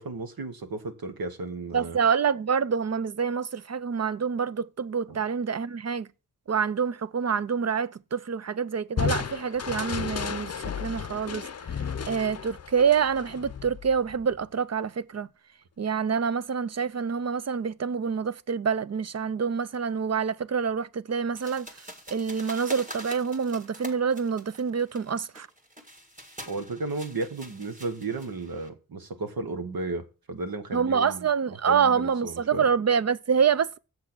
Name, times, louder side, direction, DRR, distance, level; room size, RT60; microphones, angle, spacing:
voice 1, 0.0-2.0 5.1-5.2 26.5-31.3 31.7-32.6, right 3 dB, 80° right, 1.3 m, -34 dB
voice 2, 1.7-6.1 6.5-15.3 15.8-21.7 22.1-25.5 30.7-33.8, right 6 dB, 45° right, 0.5 m, -27 dB
Crushing, 9.0-14.4, left 7 dB, 45° left, 0.6 m, -33 dB
sound 1, 21.4-28.7, equal, 20° right, 1.7 m, -45 dB
7.4 x 6.3 x 6.1 m
wide cardioid pair, 65°, 35 cm